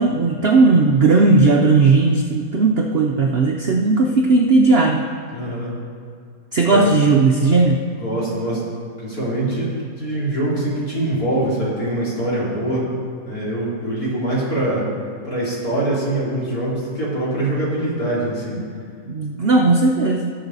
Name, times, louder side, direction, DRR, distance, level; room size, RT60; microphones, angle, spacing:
voice 1, 0.0-5.0 6.5-7.8 18.5-18.7 19.0-20.3, right 3 dB, 60° right, 2 dB, 0.6 m, -16 dB
voice 2, 5.3-5.8 6.7-6.9 8.0-8.6 9.0-12.9 13.3-14.9 15.2-18.6, right 1 dB, 65° left, -7 dB, 3.6 m, -23 dB
16.5 x 6.9 x 4.0 m, 2.2 s
omnidirectional pair, 1.8 m